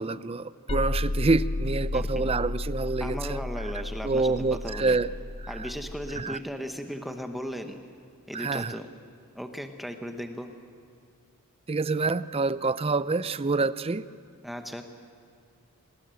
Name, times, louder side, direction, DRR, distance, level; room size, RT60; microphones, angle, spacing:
voice 1, 0.0-3.4 4.0-5.1 6.2-6.4 8.3-8.7 11.7-14.1, right 3 dB, 25° right, 15 dB, 0.5 m, -27 dB
sound 1, 0.7-6.2, left 1 dB, 25° left, 0.5 m, -32 dB
voice 2, 1.9-2.2 3.0-5.0 5.5-7.8 8.3-8.9 9.3-10.5 14.4-14.8, equal, ahead, 5 dB, 1.0 m, -36 dB
27.0 x 20.0 x 7.7 m, 2.4 s
head